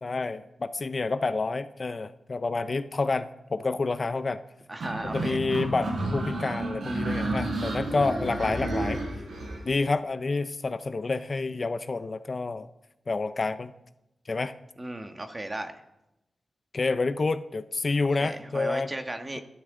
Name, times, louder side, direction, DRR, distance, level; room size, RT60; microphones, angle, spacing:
voice 1, 0.0-4.4 5.1-9.0 9.7-12.7 13.1-13.7 14.3-14.5 16.7-18.9, left 3 dB, 40° left, 11 dB, 0.6 m, -28 dB
voice 2, 4.7-5.4 14.8-15.8 18.2-19.4, right 1 dB, 20° right, 6 dB, 1.3 m, -35 dB
sound 1, 4.8-9.6, right 2 dB, 80° right, 6.1 m, -31 dB
28.0 x 12.5 x 3.8 m, 0.90 s
wide cardioid pair, 150°, 0 cm